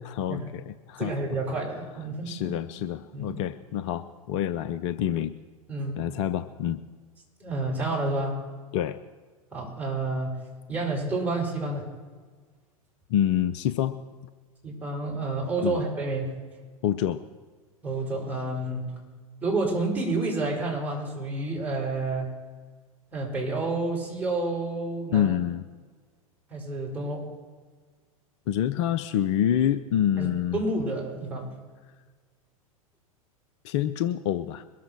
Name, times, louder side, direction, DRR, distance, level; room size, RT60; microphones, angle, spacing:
voice 1, 0.0-1.2 2.3-5.3 6.0-6.8 8.7-9.0 13.1-14.0 15.6-15.8 16.8-17.2 25.1-25.6 28.5-30.6 33.6-34.6, left 10 dB, 55° left, 12 dB, 0.6 m, -27 dB
voice 2, 1.0-2.5 3.1-3.4 5.7-5.9 7.4-8.4 9.5-10.3 10.7-11.9 14.6-16.3 17.8-18.9 19.4-22.3 23.1-25.3 26.5-27.2 30.2-30.3 30.5-31.5, right 2 dB, 10° right, -3 dB, 5.5 m, -29 dB
22.0 x 7.4 x 6.1 m, 1.5 s
figure-of-eight pair, 90°, 18 cm